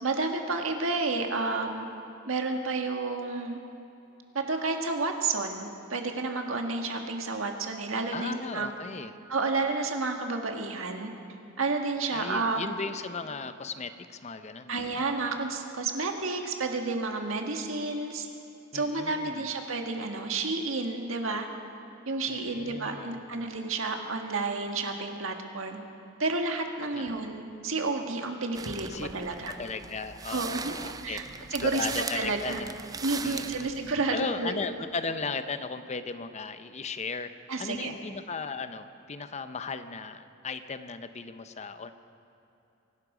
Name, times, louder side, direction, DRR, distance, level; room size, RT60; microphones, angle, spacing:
voice 1, 0.0-1.9 2.3-3.6 4.3-8.7 9.3-11.1 11.6-12.7 14.7-18.3 18.7-21.5 22.1-25.8 26.2-29.5 30.3-30.7 31.0-31.2 31.5-31.9 32.1-32.6 33.0-34.6 37.5-37.9, right 3 dB, 80° right, 3 dB, 1.6 m, -30 dB
voice 2, 8.1-9.2 12.1-15.0 18.7-19.4 22.3-23.3 26.9-27.2 28.9-29.1 29.5-31.2 31.6-32.7 33.2-33.7 34.1-37.3 37.6-41.9, left 4 dB, 35° left, 10 dB, 0.6 m, -36 dB
sound 1, 28.5-33.9, right 5 dB, 20° right, 0.4 m, -39 dB
24.0 x 12.0 x 5.0 m, 2.9 s
head